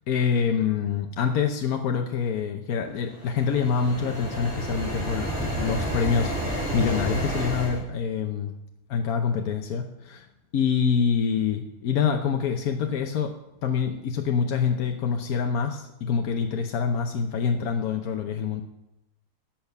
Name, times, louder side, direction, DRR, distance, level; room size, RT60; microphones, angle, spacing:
voice 1, 0.1-8.5 8.9-10.3 10.5-13.3 13.6-18.6, left 6 dB, 85° left, 4 dB, 1.3 m, -26 dB
sound 1, 3.1-7.8, right 1 dB, 5° right, 4.6 m, -30 dB
10.5 x 7.3 x 6.7 m, 0.89 s
omnidirectional pair, 1.5 m